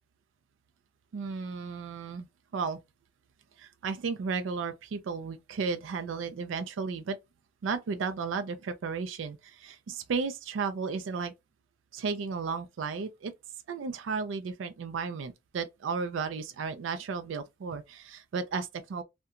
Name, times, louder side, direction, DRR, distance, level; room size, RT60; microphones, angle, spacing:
voice 1, 1.1-2.3 2.5-2.8 3.6-7.2 7.6-11.3 11.9-13.3 13.7-19.0, right 5 dB, 85° right, 0.4 m, -34 dB
2.7 x 2.1 x 2.4 m
head